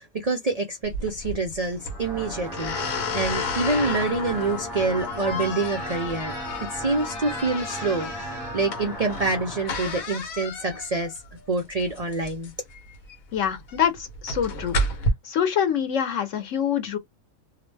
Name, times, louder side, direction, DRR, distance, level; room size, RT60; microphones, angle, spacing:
voice 1, 0.0-6.3 6.7-11.1 11.5-12.5, right 3 dB, 80° right, 0.3 m, -27 dB
sound 1, 0.8-15.1, left 2 dB, 80° left, 1.3 m, -32 dB
sound 2, 1.7-9.7, right 1 dB, 5° right, 0.6 m, -36 dB
voice 2, 13.3-14.8 15.2-17.0, left 8 dB, 65° left, 1.2 m, -25 dB
2.7 x 2.1 x 3.2 m
omnidirectional pair, 1.5 m